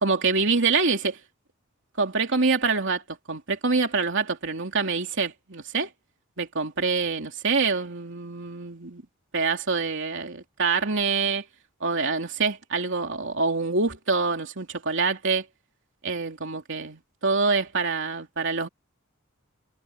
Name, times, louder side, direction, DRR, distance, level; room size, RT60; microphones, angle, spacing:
voice 1, 0.0-1.2 2.0-5.9 6.4-9.0 9.3-11.4 11.8-15.4 16.0-18.7, right 4 dB, 60° right, 3.2 m, -26 dB
head